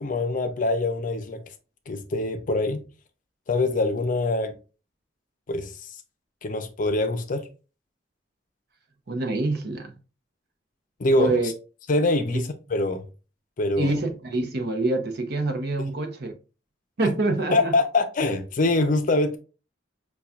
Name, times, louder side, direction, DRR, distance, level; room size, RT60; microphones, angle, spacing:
voice 1, 0.0-1.4 1.9-2.8 3.5-4.5 5.5-5.7 6.4-7.4 11.0-11.5 11.9-13.0 13.6-13.9 17.5-19.4, left 2 dB, 45° left, 0.5 m, -24 dB
voice 2, 9.1-9.9 11.2-11.5 13.8-16.3 17.0-17.7, right 2 dB, 60° right, 0.7 m, -26 dB
5.5 x 2.3 x 2.4 m
head